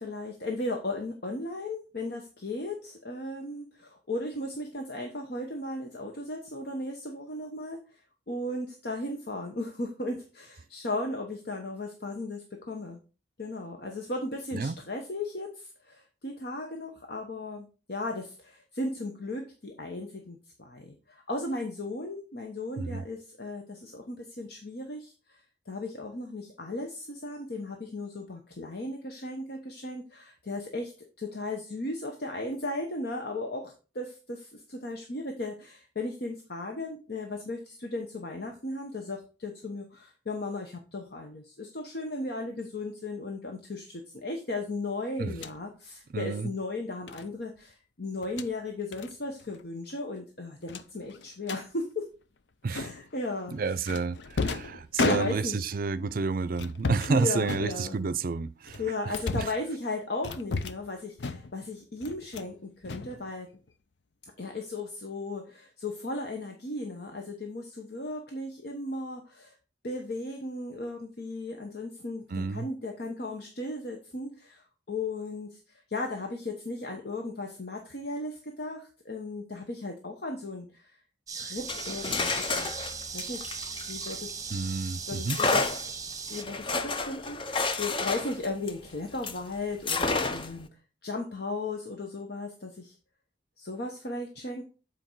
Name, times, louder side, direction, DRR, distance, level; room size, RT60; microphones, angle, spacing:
voice 1, 0.0-13.0 13.4-25.4 25.7-30.9 31.2-52.1 52.7-53.8 55.0-55.7 57.1-58.0 58.8-63.5 64.4-69.6 69.8-81.0 81.3-82.7 83.1-83.6 83.9-84.6 85.1-85.9 86.3-90.7 91.0-92.9 93.6-94.6, left 2 dB, 60° left, 1.1 m, -36 dB
sound 1, 45.3-45.6 47.1-47.3 48.1-48.5 48.9-49.1 49.4-49.6 49.9-50.0 50.7-51.6 52.7-53.2 53.9-55.7 56.5-57.2 57.4-58.2 58.7-59.6 60.2-60.9 61.2-61.7 62.0-62.5 62.8-63.7, left 3 dB, 85° left, 0.6 m, -34 dB
voice 2, 46.1-46.5 52.6-52.9 53.5-59.5 72.3-72.7 84.5-85.4, right 4 dB, 50° right, 0.5 m, -30 dB
sound 2, 81.3-86.4, right 6 dB, 20° right, 0.9 m, -38 dB
sound 3, 81.6-84.6 85.3-89.4 89.9-90.6, left 3 dB, 30° left, 0.5 m, -31 dB
7.9 x 4.6 x 4.6 m
head